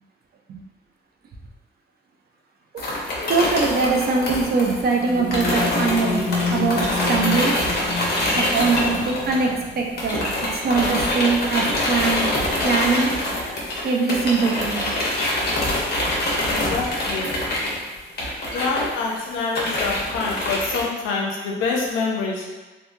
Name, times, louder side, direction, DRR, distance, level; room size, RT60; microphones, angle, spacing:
sound 1, 2.8-9.7 10.0-20.8, left 1 dB, 55° left, 0.8 m, -25 dB
voice 1, 3.3-6.2 6.5-7.6 8.4-10.3 10.6-12.3 12.6-13.1 13.8-14.8, right 4 dB, 50° right, 1 dB, 0.5 m, -22 dB
sound 2, 4.5-12.6, left 4 dB, 35° right, 1.3 m, -31 dB
voice 2, 16.4-17.3 18.5-22.5, left 4 dB, 85° left, -1 dB, 0.6 m, -26 dB
2.8 x 2.3 x 2.5 m, 1.2 s
cardioid pair, 90°, 20 cm